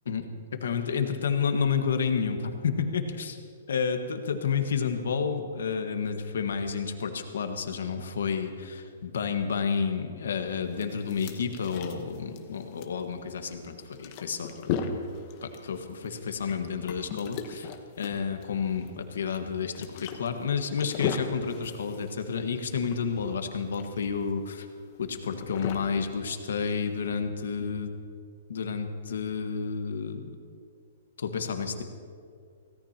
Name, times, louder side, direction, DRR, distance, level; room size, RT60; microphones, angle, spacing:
voice 1, 0.5-3.4 3.7-14.7 15.4-17.7 18.0-24.7 25.0-27.9 28.5-30.2 31.2-31.8, left 6 dB, 80° left, 6 dB, 1.5 m, -30 dB
sound 1, 10.5-27.0, left 6 dB, 30° left, 1.1 m, -38 dB
24.5 x 17.5 x 3.0 m, 2.3 s
hypercardioid pair, 170°, 0 cm